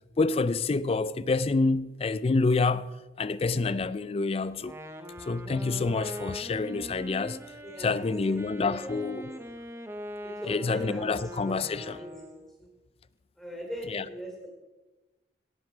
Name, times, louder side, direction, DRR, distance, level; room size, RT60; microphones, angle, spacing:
voice 1, 0.2-4.7 5.3-7.4 7.8-9.3 10.5-12.0 13.9-14.0, left 3 dB, 35° left, 0.4 m, -27 dB
Wind instrument woodwind instrument, 4.5-12.5, equal, 15° right, 0.9 m, -42 dB
voice 2, 7.6-9.4 10.2-12.2 12.6-12.7 13.4-14.5, equal, 5° left, 3.9 m, -41 dB
17.5 x 7.9 x 5.0 m
head